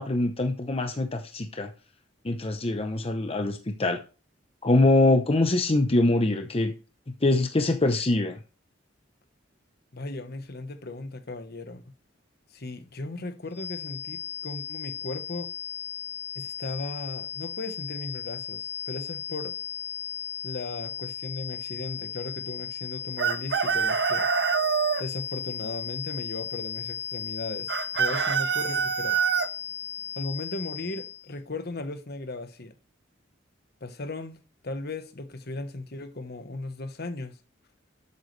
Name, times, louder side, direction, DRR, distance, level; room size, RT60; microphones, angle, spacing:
voice 1, 0.0-1.7 2.2-4.0 4.6-6.7 7.2-8.4, left 2 dB, 30° left, 0.8 m, -23 dB
voice 2, 9.9-11.9 12.5-15.5 16.3-19.6 20.4-24.3 25.0-29.2 30.1-32.7 33.8-37.4, left 2 dB, 55° left, 1.1 m, -37 dB
sound 1, 13.5-31.3, left 8 dB, 10° left, 1.2 m, -36 dB
Chicken rooster, 23.2-25.0 27.7-29.5, right 7 dB, 60° right, 0.7 m, -25 dB
12.0 x 8.4 x 3.3 m
head